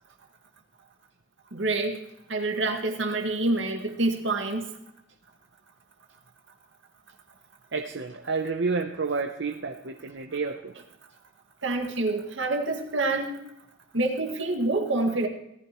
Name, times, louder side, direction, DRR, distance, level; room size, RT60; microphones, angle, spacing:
voice 1, 1.5-2.0 2.3-4.6 11.6-13.4 13.9-15.3, right 2 dB, 85° right, 4 dB, 2.0 m, -27 dB
voice 2, 7.7-10.7, right 4 dB, 70° right, 4 dB, 0.7 m, -30 dB
18.0 x 14.5 x 3.1 m, 0.85 s
head